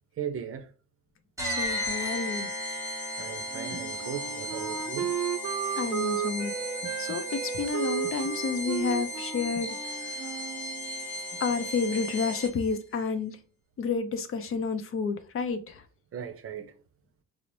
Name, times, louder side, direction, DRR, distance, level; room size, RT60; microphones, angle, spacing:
voice 1, 0.2-0.7 3.2-5.1 6.8-6.9 16.1-16.7, right 8 dB, 50° right, 0.6 m, -37 dB
voice 2, 1.4-2.5 5.8-6.5 7.0-9.8 10.0-10.3 11.4-13.4 13.8-15.8, left 5 dB, 45° left, 0.5 m, -30 dB
sound 1, 1.4-12.8, left 1 dB, 10° right, 0.8 m, -35 dB
Wind instrument woodwind instrument, 3.5-11.0, right 8 dB, 90° right, 0.5 m, -34 dB
3.9 x 2.0 x 3.0 m
cardioid pair, 90°, 30 cm